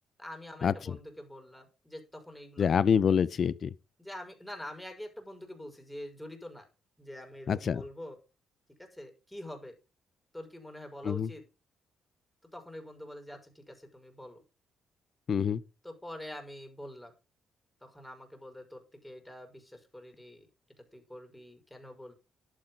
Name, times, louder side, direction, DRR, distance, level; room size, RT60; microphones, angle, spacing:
voice 1, 0.2-2.7 4.0-6.7 7.0-8.2 8.8-9.7 10.3-11.5 12.5-14.4 15.8-17.1 17.8-20.5 20.9-22.1, left 1 dB, 5° left, 5.2 m, -45 dB
voice 2, 2.6-3.7 7.5-7.8 11.0-11.3 15.3-15.6, left 7 dB, 55° left, 0.8 m, -26 dB
11.5 x 8.0 x 5.5 m
cardioid pair, 90°, 0 cm